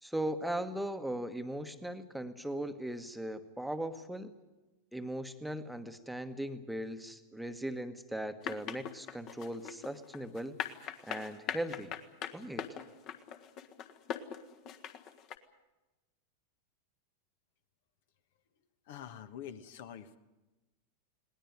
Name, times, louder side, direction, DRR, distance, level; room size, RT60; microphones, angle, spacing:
voice 1, 0.0-4.3 4.9-10.6 11.0-11.9 12.3-12.7, right 1 dB, ahead, 9 dB, 1.3 m, -38 dB
sound 1, 8.4-15.4, left 9 dB, 35° left, 1.6 m, -40 dB
voice 2, 18.9-20.2, left 9 dB, 55° left, 10 dB, 1.4 m, -46 dB
20.5 x 19.0 x 9.5 m, 1.1 s
figure-of-eight pair, 90°, 0 cm